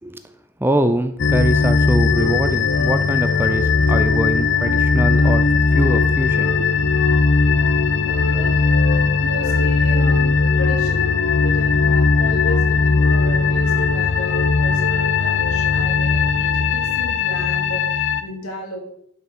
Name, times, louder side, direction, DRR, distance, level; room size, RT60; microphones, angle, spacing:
voice 1, 0.6-5.5 5.7-6.5, right 1 dB, 10° right, 9 dB, 0.6 m, -23 dB
sound 1, 1.2-18.2, left 4 dB, 55° left, 0.7 m, -18 dB
voice 2, 8.0-8.6 9.2-18.8, equal, 85° left, 1 dB, 2.9 m, -34 dB
10.5 x 6.1 x 6.2 m, 0.69 s
head